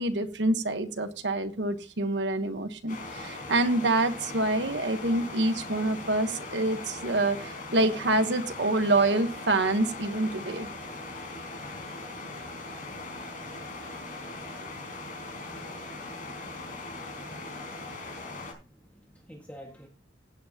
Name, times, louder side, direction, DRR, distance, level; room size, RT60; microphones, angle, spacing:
voice 1, 0.0-10.7, right 2 dB, 65° right, 9 dB, 1.2 m, -26 dB
sound 1, 2.9-18.5, left 2 dB, 45° left, 4.2 m, -40 dB
voice 2, 15.9-16.2 18.6-19.9, equal, 10° left, -1 dB, 1.7 m, -52 dB
16.0 x 8.2 x 2.9 m, 0.35 s
head